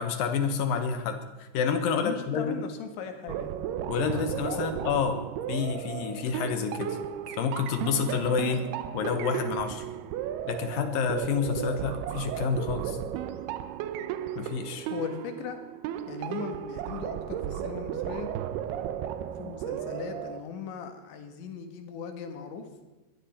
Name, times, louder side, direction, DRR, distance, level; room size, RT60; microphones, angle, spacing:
voice 1, 0.0-2.7 3.9-5.2 5.5-7.0 7.4-8.6 8.9-9.8 10.5-13.0 14.4-14.9, left 6 dB, 65° left, 7 dB, 2.5 m, -29 dB
voice 2, 1.9-3.5 4.5-4.7 14.9-15.6 16.1-18.3 19.4-22.7, left 7 dB, 85° left, 6 dB, 4.0 m, -38 dB
sound 1, 3.3-20.4, right 10 dB, 75° right, 2.6 m, -35 dB
21.5 x 14.0 x 4.3 m, 1.2 s
omnidirectional pair, 5.1 m